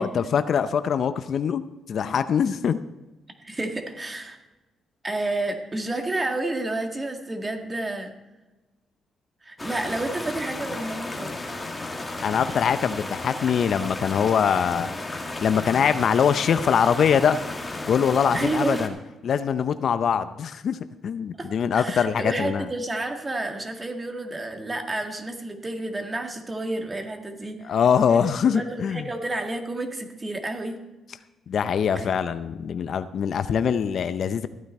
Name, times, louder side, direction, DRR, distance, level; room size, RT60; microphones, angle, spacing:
voice 1, 0.0-1.6 1.9-2.8 12.2-14.9 15.4-17.4 17.9-18.9 19.2-20.8 21.0-22.7 27.6-29.1 31.5-34.5, left 7 dB, 60° left, 12 dB, 0.6 m, -23 dB
voice 2, 3.4-4.4 5.0-8.1 9.4-11.5 18.3-18.9 21.4-21.5 21.7-27.8 28.1-30.8 32.0-32.1, right 2 dB, 20° right, 5 dB, 1.8 m, -30 dB
sound 1, 9.6-18.9, left 2 dB, 15° left, 1.8 m, -34 dB
14.0 x 9.5 x 4.3 m, 1.1 s
cardioid pair, 90°, 0 cm